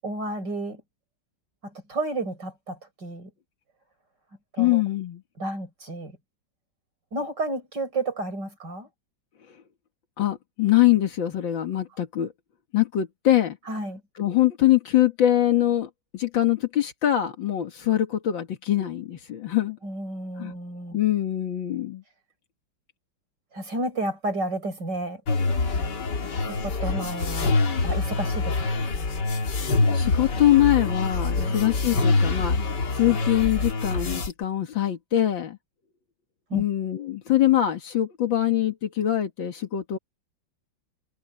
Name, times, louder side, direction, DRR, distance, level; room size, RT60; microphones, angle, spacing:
voice 1, 0.0-0.8 1.6-3.3 4.6-4.8 5.4-6.2 7.1-8.9 13.7-14.0 19.8-21.0 23.5-25.2 25.6-25.7 26.4-27.5 27.8-28.6 31.4-31.5 36.5-36.6, right 2 dB, 65° right, 7.0 m, -31 dB
voice 2, 4.6-5.2 10.2-12.3 12.7-13.6 14.2-19.8 20.4-20.5 20.9-22.0 29.6-32.6 32.9-35.6 36.5-40.0, left 13 dB, 85° left, 2.4 m, -23 dB
sound 1, 25.3-34.3, left 3 dB, 65° left, 2.8 m, -25 dB
omnidirectional pair, 2.0 m